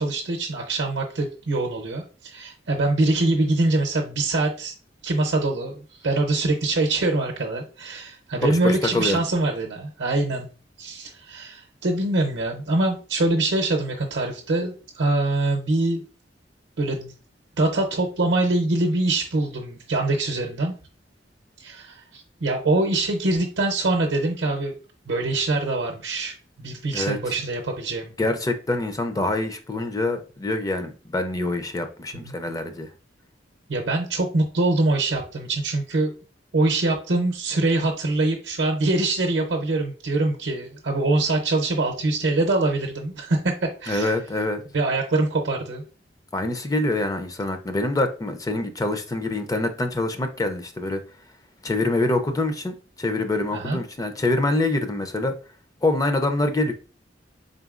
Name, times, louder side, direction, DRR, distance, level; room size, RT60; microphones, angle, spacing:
voice 1, 0.0-4.7 5.0-10.5 10.8-16.0 16.8-17.1 17.6-20.7 21.6-24.7 25.1-28.1 32.1-32.3 33.7-36.1 36.5-44.1 44.7-45.8 53.5-53.8, right 2 dB, 70° right, 0.6 m, -24 dB
voice 2, 8.5-9.2 26.9-27.3 28.2-32.9 43.9-44.6 46.3-51.0 51.6-55.3 55.8-56.7, left 2 dB, 20° left, 0.4 m, -25 dB
3.9 x 3.7 x 2.4 m
head